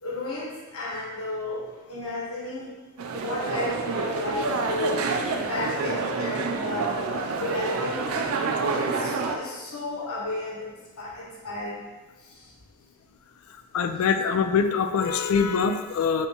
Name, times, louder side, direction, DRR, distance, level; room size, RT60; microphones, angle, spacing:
voice 1, 0.0-2.7 3.1-5.1 5.4-7.0 7.4-8.0 8.6-11.9 12.3-12.5, left 2 dB, 85° left, -5 dB, 1.2 m, -33 dB
sound 1, 3.0-9.4, right 4 dB, 70° right, 0.4 m, -28 dB
voice 2, 13.7-16.3, left 6 dB, 70° left, 7 dB, 0.3 m, -23 dB
4.1 x 3.4 x 2.8 m, 1.2 s
head